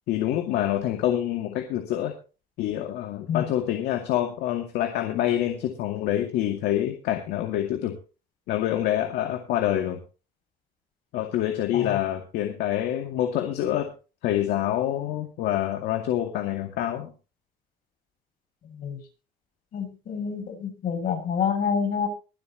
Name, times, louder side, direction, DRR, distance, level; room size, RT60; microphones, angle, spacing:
voice 1, 0.1-2.1 2.6-8.0 8.5-10.0 11.1-13.9 14.2-17.1, left 12 dB, 80° left, 4 dB, 2.2 m, -26 dB
voice 2, 19.7-22.1, left 7 dB, 60° left, 3 dB, 7.0 m, -27 dB
23.5 x 8.1 x 3.0 m, 0.33 s
cardioid pair, 115°, 16 cm